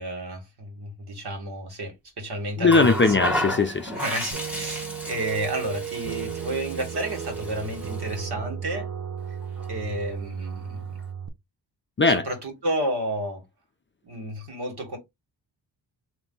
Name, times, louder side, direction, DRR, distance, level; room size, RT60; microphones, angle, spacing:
voice 1, 0.0-3.2 3.9-8.9 9.7-10.8 12.1-13.4 14.0-15.0, right 1 dB, 55° right, 2.2 m, -31 dB
voice 2, 2.6-3.9 12.0-12.2, left 3 dB, 25° left, 0.6 m, -19 dB
Water tap faucet, 2.6-8.2 9.4-9.6, equal, 5° right, 1.6 m, -33 dB
sound 1, 4.3-11.3, right 8 dB, 35° right, 0.9 m, -34 dB
3.3 x 2.9 x 4.0 m
supercardioid pair, 45°, 47 cm